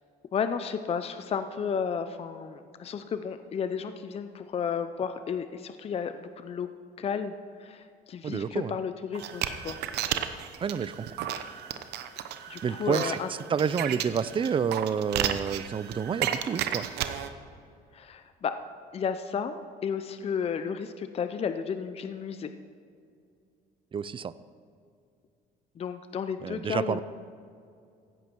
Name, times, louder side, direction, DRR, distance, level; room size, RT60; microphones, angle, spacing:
voice 1, 0.3-6.7 7.0-7.3 7.6-9.8 12.5-13.3 17.9-18.5 18.9-22.5 25.8-27.0, left 7 dB, 35° left, 10 dB, 0.6 m, -32 dB
voice 2, 8.2-8.7 10.6-11.1 12.6-13.2 13.5-16.9 23.9-24.3 26.4-27.0, right 7 dB, 30° right, 16 dB, 0.4 m, -29 dB
sound 1, 9.1-17.3, right 10 dB, 80° right, 0.9 m, -33 dB
15.5 x 11.0 x 4.6 m, 2.4 s
cardioid pair, 110°, 17 cm